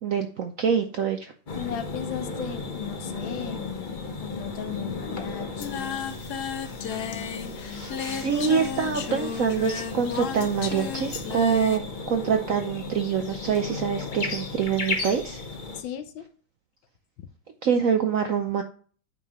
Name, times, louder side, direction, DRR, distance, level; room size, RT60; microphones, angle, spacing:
voice 1, 0.0-1.3 7.7-15.5 17.6-18.6, right 7 dB, 65° right, 0.8 m, -25 dB
voice 2, 1.5-6.1 15.7-16.3, left 9 dB, 75° left, 1.6 m, -37 dB
sound 1, 1.5-15.8, left 3 dB, 35° left, 0.8 m, -35 dB
Singing, 5.6-11.8, left 7 dB, 60° left, 1.3 m, -34 dB
8.7 x 5.4 x 3.0 m
omnidirectional pair, 2.2 m